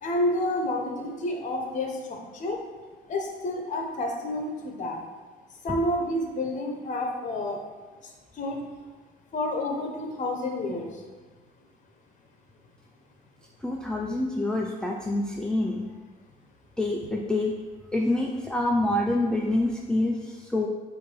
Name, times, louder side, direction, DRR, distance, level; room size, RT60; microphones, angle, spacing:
voice 1, 0.0-2.6 3.1-5.0 5.6-7.6 8.4-8.6 9.3-10.9, left 1 dB, 45° left, 2 dB, 1.2 m, -29 dB
voice 2, 13.6-15.9 16.8-17.5 17.9-20.7, left 1 dB, 5° left, -1 dB, 0.5 m, -26 dB
8.0 x 2.8 x 4.6 m, 1.3 s
cardioid pair, 110°, 17 cm